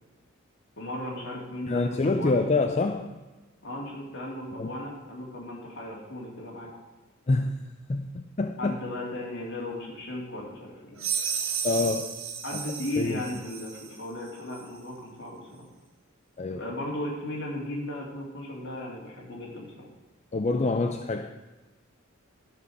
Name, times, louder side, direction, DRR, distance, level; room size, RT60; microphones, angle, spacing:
voice 1, 0.8-2.4 3.6-6.7 8.6-11.0 12.4-15.7 16.5-19.9, left 1 dB, 55° left, -2 dB, 2.7 m, -36 dB
voice 2, 1.7-3.2 4.6-4.7 7.3-7.6 7.9-8.7 11.6-12.2 13.0-13.2 16.4-16.6 20.3-21.4, left 3 dB, 30° left, 6 dB, 0.4 m, -26 dB
sound 1, 11.0-14.0, right 7 dB, 70° right, 1.2 m, -33 dB
12.5 x 5.3 x 6.4 m, 1.2 s
head